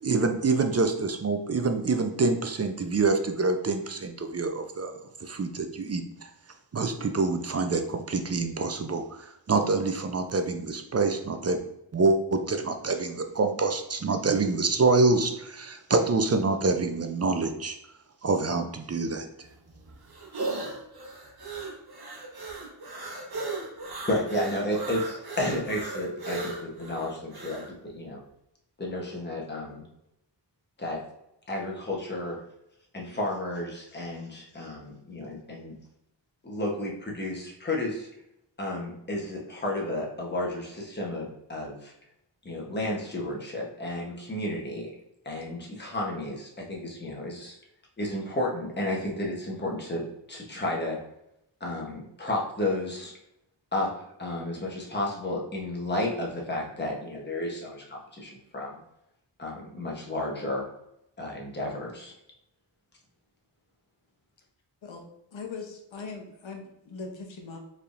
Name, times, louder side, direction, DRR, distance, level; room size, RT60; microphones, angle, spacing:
voice 1, 0.0-6.3 6.7-11.6 11.9-17.8 18.2-19.5, right 3 dB, 35° right, 6 dB, 0.4 m, -26 dB
sound 1, 19.4-27.7, right 3 dB, 55° right, 1.1 m, -36 dB
voice 2, 24.1-28.2 28.8-29.8 30.8-31.0 31.5-32.4 32.9-35.7 36.4-38.1 38.6-41.9 42.4-44.9 45.2-47.6 48.0-51.0 51.6-53.1 53.7-53.9 54.2-58.8 59.4-60.7 61.2-62.1, left 1 dB, 25° left, -2 dB, 1.0 m, -32 dB
voice 3, 65.3-67.6, left 4 dB, 85° left, 2 dB, 0.9 m, -40 dB
4.6 x 3.4 x 2.5 m, 0.82 s
wide cardioid pair, 60°, 45 cm